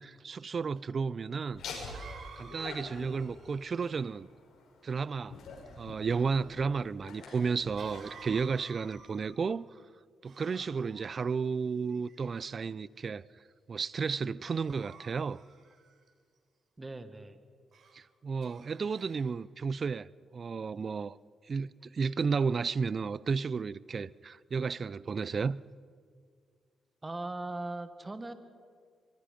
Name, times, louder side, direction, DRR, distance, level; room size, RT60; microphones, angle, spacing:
voice 1, 0.0-1.6 2.4-4.3 4.8-5.4 5.8-9.7 10.2-13.3 13.7-15.4 17.9-21.2 21.5-25.6, right 5 dB, 45° right, 0.5 m, -33 dB
Cough, 0.8-0.9 1.8-4.2 7.8-9.5 10.2-11.1 11.9-12.6 13.2-13.5 14.5-16.1 17.7-18.0 18.4-19.3, right 5 dB, 60° right, 3.9 m, -53 dB
Laughter, 1.5-9.2, left 3 dB, 80° left, 6.5 m, -47 dB
voice 2, 16.8-17.4 27.0-28.3, right 2 dB, 20° right, 1.5 m, -39 dB
24.0 x 24.0 x 5.3 m
cardioid pair, 90°, 0 cm